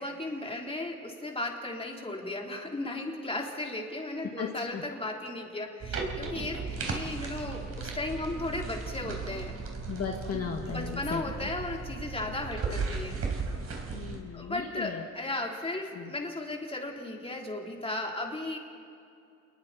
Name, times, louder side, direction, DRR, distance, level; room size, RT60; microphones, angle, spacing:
voice 1, 0.0-9.5 10.7-13.2 14.3-18.6, left 2 dB, 20° left, 0 dB, 3.8 m, -35 dB
voice 2, 4.4-4.8 9.9-11.2 13.9-15.0 15.9-16.1, left 6 dB, 55° left, 1 dB, 1.9 m, -36 dB
sound 1, 5.8-14.2, right 4 dB, 55° right, 4.4 m, -36 dB
28.0 x 21.5 x 4.3 m, 2.6 s
cardioid pair, 90°, 30 cm